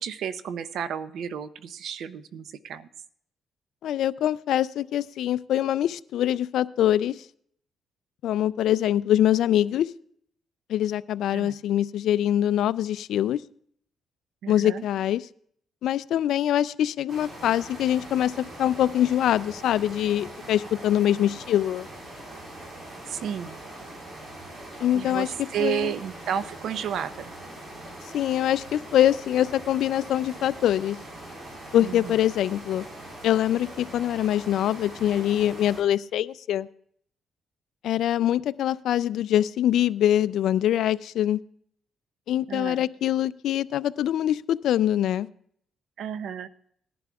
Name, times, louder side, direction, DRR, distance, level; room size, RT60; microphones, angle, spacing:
voice 1, 0.0-2.9 11.3-11.5 14.4-14.8 23.1-23.6 24.9-27.3 31.8-32.2 42.5-42.8 46.0-46.5, right 9 dB, 70° right, 0.6 m, -32 dB
voice 2, 3.8-7.2 8.2-9.9 10.7-13.4 14.5-15.2 15.8-18.3 18.6-21.9 24.8-25.3 25.6-25.9 28.1-31.0 31.7-32.8 33.2-36.7 37.8-41.4 42.3-45.3, left 11 dB, 75° left, 0.3 m, -24 dB
sound 1, 17.1-35.8, right 1 dB, 50° right, 4.3 m, -42 dB
19.0 x 11.0 x 2.3 m
cardioid pair, 90°, 0 cm